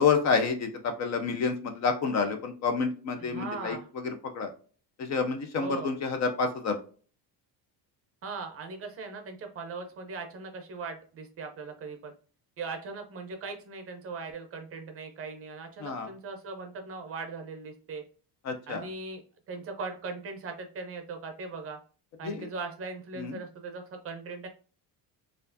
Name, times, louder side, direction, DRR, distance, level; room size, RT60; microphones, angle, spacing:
voice 1, 0.0-3.8 4.0-4.5 5.0-6.8 15.8-16.1 18.4-18.9 22.2-22.5 23.2-23.4, left 5 dB, 40° left, 7 dB, 0.5 m, -28 dB
voice 2, 3.2-3.9 5.6-5.9 8.2-12.1 12.6-18.0 18.7-19.2 19.5-21.8 22.2-24.5, right 4 dB, 35° right, 5 dB, 0.6 m, -39 dB
4.3 x 2.5 x 2.5 m, 0.39 s
cardioid pair, 175°, 41 cm